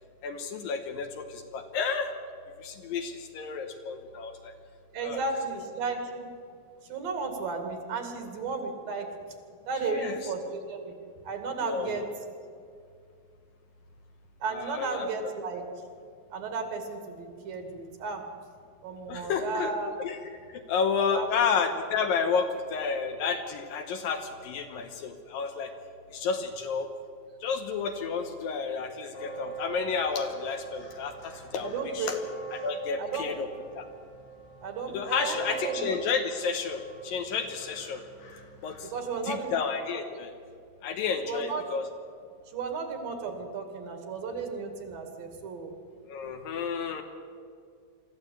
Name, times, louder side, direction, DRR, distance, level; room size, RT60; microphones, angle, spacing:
voice 1, 0.2-2.1 2.6-4.5 5.0-5.2 9.9-10.2 11.6-12.0 14.5-15.1 19.1-19.7 20.0-20.2 20.5-25.7 26.1-26.9 27.4-32.2 32.5-33.5 33.8-33.9 34.9-38.0 38.6-38.9 39.2-40.3 40.8-41.9 46.1-47.0, left 5 dB, 70° left, 5 dB, 2.7 m, -31 dB
voice 2, 4.9-6.3 6.8-9.1 9.7-11.0 11.2-12.1 14.4-15.6 16.3-18.2 18.8-19.9 21.1-21.3 31.6-32.2 33.0-33.3 34.6-35.9 38.8-39.5 41.2-41.6 42.5-45.7, right 4 dB, 65° right, 5 dB, 3.9 m, -34 dB
sound 1, 29.1-39.5, right 6 dB, 90° left, 5.2 m, -43 dB
23.5 x 14.0 x 8.6 m, 2.3 s
omnidirectional pair, 4.4 m